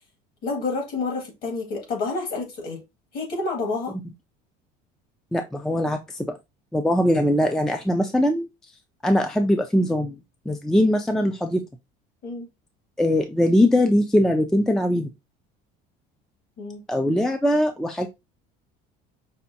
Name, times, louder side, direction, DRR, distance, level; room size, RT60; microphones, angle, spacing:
voice 1, 0.4-2.8 3.1-4.0 12.2-12.5 16.6-16.8, left 3 dB, 55° left, 1.9 m, -29 dB
voice 2, 5.3-6.3 6.7-8.5 9.0-10.2 10.5-11.6 13.0-15.1 16.9-18.1, left 1 dB, 5° left, 0.3 m, -21 dB
5.6 x 2.5 x 2.6 m
cardioid pair, 140°, 19 cm